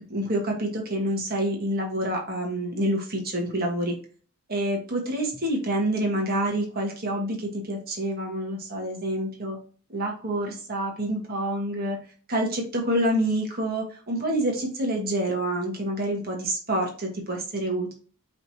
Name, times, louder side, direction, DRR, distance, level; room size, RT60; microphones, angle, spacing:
voice 1, 0.1-3.9 4.5-9.6 9.9-12.0 12.3-17.9, right 1 dB, 45° right, 1 dB, 1.4 m, -27 dB
4.8 x 3.3 x 2.8 m, 0.40 s
head